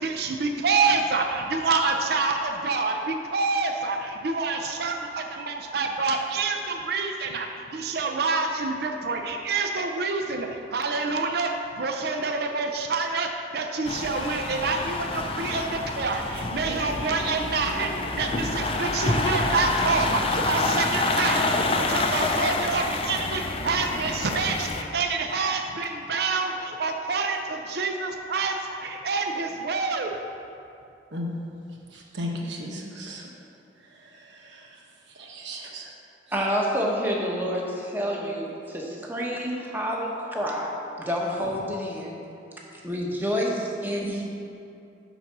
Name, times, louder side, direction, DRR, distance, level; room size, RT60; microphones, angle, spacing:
voice 1, 0.0-11.5 11.8-30.1, right 4 dB, 60° right, 4 dB, 0.5 m, -27 dB
sound 1, 13.8-24.8, left 2 dB, 30° left, 0.5 m, -27 dB
voice 2, 31.9-33.2 34.5-34.6 35.2-35.8, left 1 dB, 85° right, -1 dB, 1.0 m, -34 dB
voice 3, 36.3-40.7 41.0-42.2 42.8-44.2, equal, 10° right, -2 dB, 1.0 m, -28 dB
10.0 x 4.1 x 5.9 m, 2.7 s
head